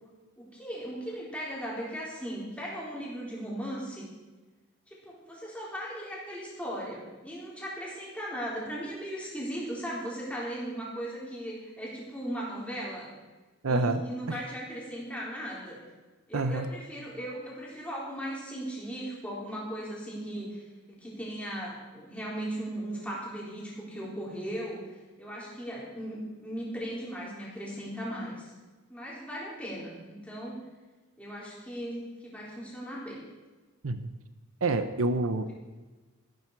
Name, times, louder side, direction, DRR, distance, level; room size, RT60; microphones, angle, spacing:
voice 1, 0.4-4.1 5.0-13.1 13.7-15.8 16.3-20.6 20.9-24.8 25.2-28.5 28.9-30.6 31.2-33.2, equal, 5° left, -6 dB, 3.7 m, -37 dB
voice 2, 13.6-14.0 14.3-14.4 16.3-16.7 33.8-34.1 34.6-35.5, right 2 dB, 70° right, 10 dB, 0.7 m, -28 dB
14.0 x 12.0 x 4.7 m, 1.2 s
head